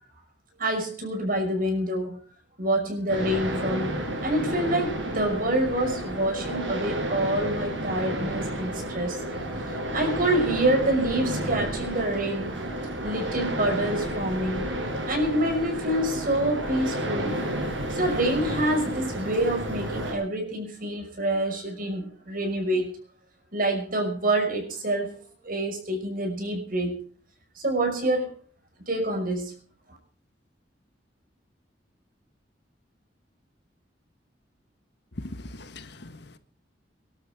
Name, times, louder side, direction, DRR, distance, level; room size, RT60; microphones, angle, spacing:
voice 1, 0.6-2.2 2.6-9.2 9.5-12.5 13.0-14.7 15.1-17.4 17.9-22.9 23.5-25.1 25.4-27.0 27.6-28.3 28.9-29.5, right 1 dB, 50° right, 5.8 m, -27 dB
sound 1, 3.1-20.1, right 1 dB, 85° right, 6.9 m, -31 dB
voice 2, 35.2-36.4, left 2 dB, 65° left, 1.5 m, -40 dB
24.5 x 12.5 x 3.7 m
head